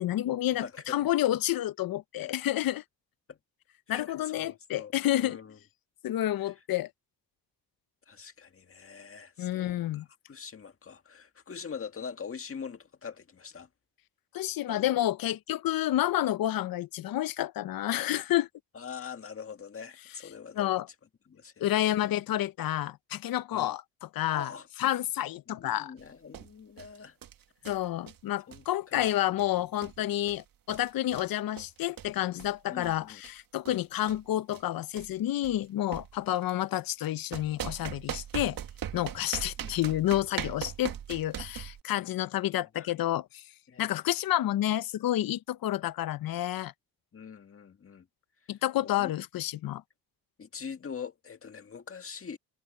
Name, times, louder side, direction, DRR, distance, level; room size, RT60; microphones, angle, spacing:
voice 1, 0.0-2.8 3.9-5.4 6.0-6.9 9.4-10.1 14.3-18.5 20.6-20.9 21.6-24.5 24.8-25.9 27.7-38.6 38.9-43.4 43.8-46.7 48.5-49.8, left 13 dB, 65° left, 0.7 m, -29 dB
voice 2, 0.6-1.1 2.2-2.3 3.3-3.4 3.9-5.6 6.4-6.5 8.1-13.7 14.7-14.9 18.7-20.8 21.3-21.8 23.5-23.8 24.3-24.7 25.5-27.2 28.5-29.1 29.5-29.7 32.7-33.2 39.6-39.7 42.7-42.9 43.7-44.0 47.1-48.1 48.8-49.1 50.4-52.4, left 6 dB, 35° left, 1.8 m, -43 dB
sound 1, 26.0-26.1 26.3-26.5 26.8-27.0 27.2-27.8 28.1-28.2 28.5-28.7 28.9-29.1 29.4-29.5 29.8-30.0 30.3-30.4 30.7-31.3 31.6-32.5 32.8-33.0 33.2-33.3 33.6-33.8 34.1-34.2 34.5-34.6 35.0-35.1 35.4-35.6 35.9-36.4 37.3-41.8, right 10 dB, 60° right, 1.5 m, -40 dB
cardioid pair, 120°, 38 cm